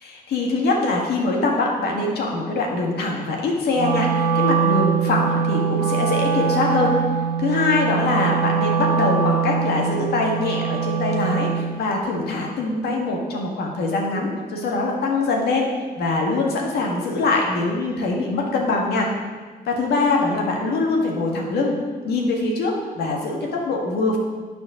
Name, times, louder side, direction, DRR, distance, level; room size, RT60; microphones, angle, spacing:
voice 1, 0.0-6.9 7.4-15.7 16.0-19.1 19.7-21.8 22.1-24.2, left 3 dB, 85° left, 0 dB, 1.8 m, -23 dB
Wind instrument woodwind instrument, 3.8-11.8, right 6 dB, 60° right, 1.0 m, -22 dB
9.6 x 4.5 x 6.3 m, 1.5 s
cardioid pair, 65°, 16 cm